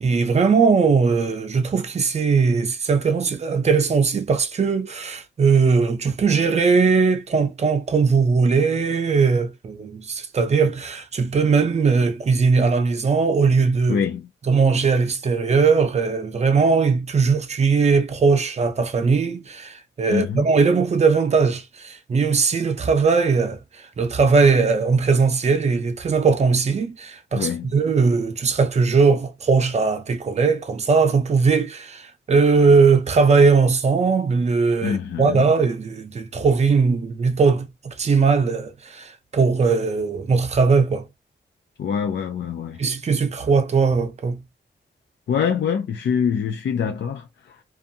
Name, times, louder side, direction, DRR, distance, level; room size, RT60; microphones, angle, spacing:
voice 1, 0.0-14.0 14.5-23.6 24.0-41.1 42.8-44.4, right 5 dB, 35° right, 0.6 m, -19 dB
voice 2, 13.9-14.3 20.1-20.5 27.3-27.7 34.8-35.5 41.8-42.8 45.3-47.6, left 7 dB, 65° left, 0.5 m, -25 dB
2.6 x 2.4 x 2.6 m
wide cardioid pair, 155°, 19 cm